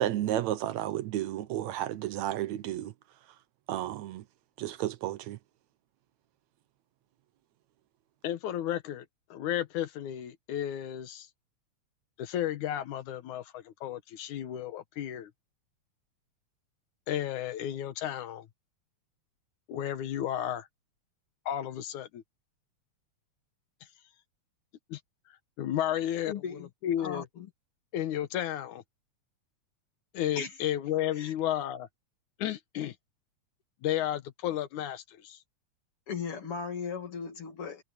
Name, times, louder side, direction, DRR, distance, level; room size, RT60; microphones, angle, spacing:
voice 1, 0.0-2.9 3.7-4.2 4.6-5.4, right 13 dB, 75° right, 2.0 m, -32 dB
voice 2, 8.2-9.1 9.3-11.3 12.2-15.3 17.1-18.5 19.7-20.7 21.5-22.2 24.9-25.0 25.6-26.3 26.8-27.3 27.9-28.8 30.1-31.9 32.4-33.0 33.8-35.4, left 11 dB, 85° left, 2.6 m, -33 dB
voice 3, 26.3-26.7 27.0-27.5 30.4-30.6 31.1-31.3 36.1-37.8, left 6 dB, 50° left, 3.3 m, -37 dB
omnidirectional pair, 3.4 m